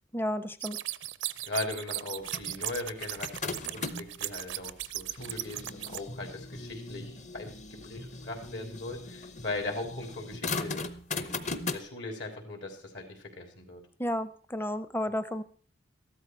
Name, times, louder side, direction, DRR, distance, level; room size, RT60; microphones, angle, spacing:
voice 1, 0.1-0.8 14.0-15.4, left 1 dB, 10° left, 13 dB, 0.6 m, -32 dB
sound 1, 0.6-6.0, right 14 dB, 80° right, 0.6 m, -37 dB
voice 2, 1.4-10.8 11.1-11.3 11.7-13.8, left 2 dB, 70° left, 4 dB, 3.6 m, -39 dB
sound 2, 2.3-4.2 4.8-11.8, left 3 dB, 40° left, 0.9 m, -38 dB
14.0 x 12.5 x 4.6 m, 0.43 s
head